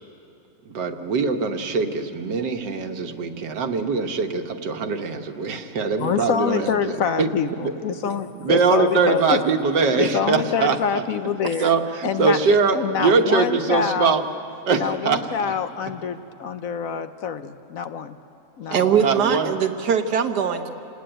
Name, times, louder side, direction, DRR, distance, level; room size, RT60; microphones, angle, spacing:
voice 1, 0.6-7.3 7.6-11.0 11.6-14.2 14.7-15.5 19.0-19.6, right 5 dB, 90° right, 6 dB, 1.9 m, -22 dB
voice 2, 6.0-9.4 10.0-11.7 12.0-12.4 12.7-14.2 14.8-18.2 18.6-18.9, left 7 dB, 60° left, 10 dB, 1.0 m, -26 dB
voice 3, 18.7-20.7, right 7 dB, 70° right, 7 dB, 1.7 m, -21 dB
28.0 x 19.5 x 9.0 m, 2.9 s
omnidirectional pair, 1.8 m